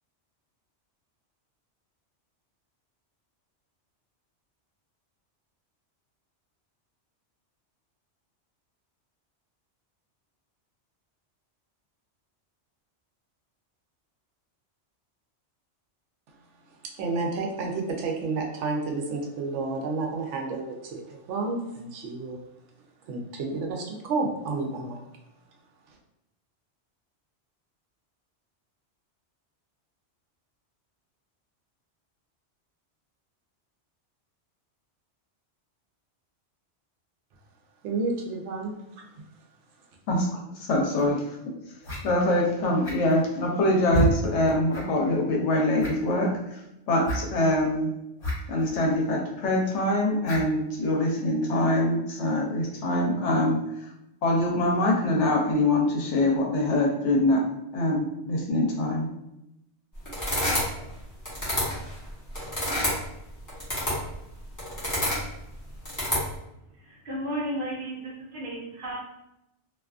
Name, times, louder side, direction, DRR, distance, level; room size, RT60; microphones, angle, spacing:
voice 1, 17.0-22.4 23.1-25.0 37.8-38.8, right 3 dB, 85° right, 1 dB, 0.9 m, -30 dB
voice 2, 40.1-41.2 42.0-46.6 46.9-47.9 48.5-53.6 54.2-57.4 57.7-59.1, left 1 dB, 85° left, -1 dB, 1.0 m, -24 dB
sound 1, 41.0-41.1 41.8-42.0 42.8-43.2 43.9-44.1 44.7-44.8 45.1-45.2 45.8-46.1 47.0-47.2 48.2-48.3 48.6-48.7 50.2-50.5, right 1 dB, 50° left, 1.1 m, -28 dB
sound 2, 60.0-60.9 61.2-63.0 63.5-64.1 64.6-65.2 65.8-66.3, equal, 20° left, 0.9 m, -28 dB
voice 3, 66.7-69.0, right 1 dB, 55° right, -3 dB, 0.8 m, -34 dB
2.6 x 2.3 x 2.3 m, 0.87 s
omnidirectional pair, 1.2 m